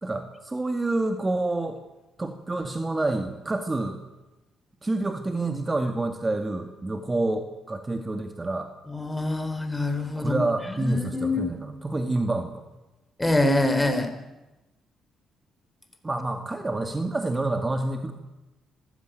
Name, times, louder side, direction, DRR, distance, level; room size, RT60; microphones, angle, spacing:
voice 1, 0.0-1.8 2.2-4.0 4.8-8.7 10.2-12.6 16.0-18.1, right 2 dB, 20° right, 6 dB, 2.2 m, -28 dB
voice 2, 8.9-10.4 10.7-11.4 13.2-14.1, left 2 dB, 15° left, 8 dB, 3.9 m, -25 dB
26.0 x 15.5 x 9.4 m, 1.0 s
cardioid pair, 90°, 0 cm